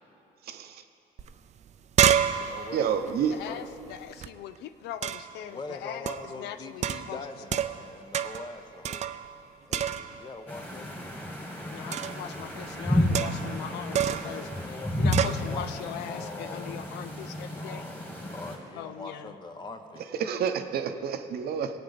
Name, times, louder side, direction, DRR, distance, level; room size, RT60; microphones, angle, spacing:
voice 1, 0.5-0.8 2.7-3.3 20.2-21.8, right 8 dB, 65° right, 8 dB, 0.7 m, -29 dB
sound 1, 1.2-1.3 1.6-4.3 5.0-5.4 6.1-6.3 6.8-7.9 8.1-8.5 8.8-9.4 9.7-10.3 11.9-12.3 13.1-13.6 13.9-14.4 15.1-15.4, right 9 dB, 40° right, 0.4 m, -28 dB
voice 2, 2.4-3.8 5.4-9.1 9.7-11.0 14.4-15.7 16.0-17.1 17.6-20.1, left 3 dB, 25° left, 6 dB, 0.9 m, -43 dB
voice 3, 3.3-6.1 6.4-7.3 7.5-7.6 11.7-17.9 18.8-19.4, left 11 dB, 80° left, 12 dB, 0.5 m, -40 dB
sound 2, 10.5-18.6, left 1 dB, 10° left, 2.3 m, -32 dB
18.0 x 8.8 x 4.0 m, 2.7 s
cardioid pair, 110°, 17 cm